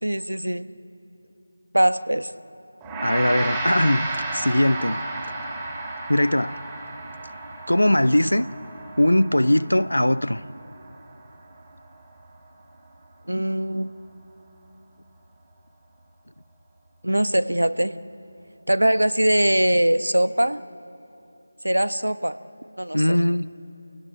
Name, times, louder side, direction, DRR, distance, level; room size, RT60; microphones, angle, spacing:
voice 1, 0.0-0.7 1.7-2.3 13.3-13.9 17.0-17.9 18.7-20.6 21.6-22.4 22.8-23.2, right 1 dB, 75° right, 1.1 m, -21 dB
Gong, 2.8-12.2, right 2 dB, 10° right, 2.8 m, -33 dB
voice 2, 3.0-5.0 6.1-6.6 7.7-8.5 9.0-10.4 22.9-23.5, left 1 dB, 75° left, 0.8 m, -20 dB
28.5 x 17.5 x 8.7 m
figure-of-eight pair, 165°, 0 cm